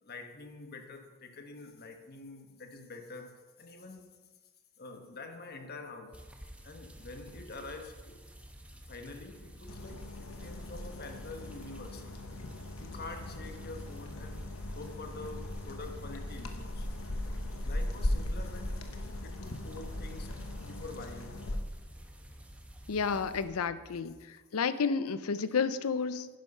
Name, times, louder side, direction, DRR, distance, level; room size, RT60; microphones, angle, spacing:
voice 1, 0.0-4.1 4.8-6.2 6.6-8.2 8.9-12.1 12.8-14.4 14.7-16.9 17.6-18.9 19.2-21.4 23.3-23.4, left 3 dB, 45° left, 5 dB, 1.3 m, -46 dB
sound 1, 6.1-23.4, equal, 5° right, 1.0 m, -51 dB
sound 2, 9.7-21.6, left 1 dB, 70° left, 1.1 m, -38 dB
voice 2, 22.9-26.3, left 5 dB, 85° left, 14 dB, 0.6 m, -31 dB
10.5 x 9.9 x 5.5 m, 1.3 s
head